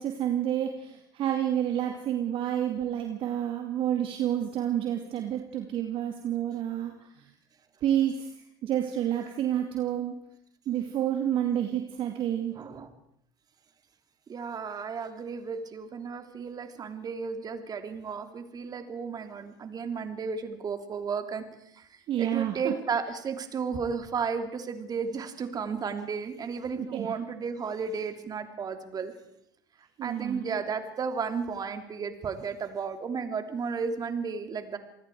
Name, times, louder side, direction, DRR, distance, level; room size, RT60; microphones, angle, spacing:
voice 1, 0.0-6.9 7.8-8.3 8.6-10.1 10.7-12.6 22.1-22.7 26.9-27.1 30.0-30.4, right 11 dB, 55° right, 4 dB, 2.3 m, -29 dB
voice 2, 12.5-12.9 14.3-21.4 21.7-21.9 22.2-29.1 30.0-34.8, right 5 dB, 35° right, 7 dB, 3.2 m, -33 dB
27.5 x 19.5 x 4.9 m, 0.77 s
hypercardioid pair, 75°, 11 cm